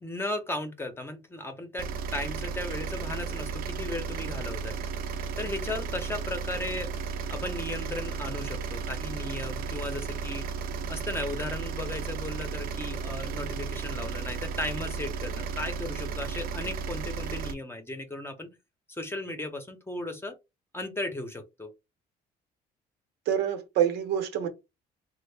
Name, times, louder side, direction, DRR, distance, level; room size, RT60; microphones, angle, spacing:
voice 1, 0.0-4.7 5.4-6.9 7.3-10.5 10.9-18.6 18.9-20.4 20.7-21.7, left 2 dB, 15° left, 0.7 m, -36 dB
sound 1, 1.8-17.5, right 5 dB, 60° right, 0.6 m, -34 dB
voice 2, 23.3-24.5, right 10 dB, 90° right, 0.9 m, -26 dB
3.5 x 2.0 x 3.3 m
cardioid pair, 110°, 17 cm